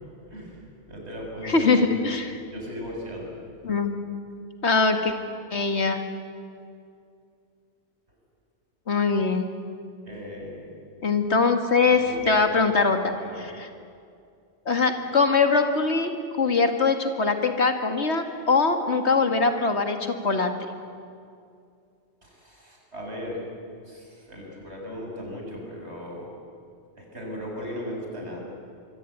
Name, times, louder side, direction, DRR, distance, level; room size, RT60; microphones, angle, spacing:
voice 1, 0.3-0.6 0.9-1.6 2.0-2.2 2.5-3.3 10.0-10.7 11.8-12.6 13.2-13.5 22.2-23.4 23.9-26.3 27.0-28.4, equal, 80° right, -1 dB, 7.0 m, -37 dB
voice 2, 1.4-2.4 3.6-4.0 4.6-5.1 5.5-6.0 8.9-9.5 11.0-13.1 14.7-16.1 16.4-20.5, left 4 dB, 80° left, 6 dB, 2.3 m, -22 dB
24.5 x 24.0 x 9.5 m, 2.4 s
omnidirectional pair, 1.1 m